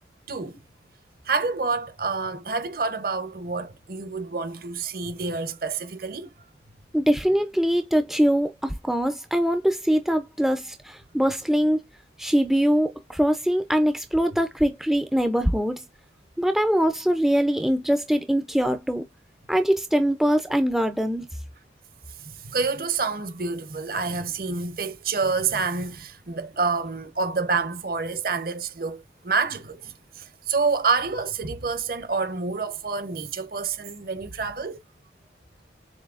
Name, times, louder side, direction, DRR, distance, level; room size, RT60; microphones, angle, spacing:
voice 1, 0.3-0.6 1.2-6.3 22.2-34.8, right 4 dB, 50° right, 0.8 m, -28 dB
voice 2, 6.9-11.8 12.2-15.8 16.4-19.0 19.5-21.2, equal, ahead, 0.4 m, -23 dB
7.2 x 2.8 x 2.4 m
head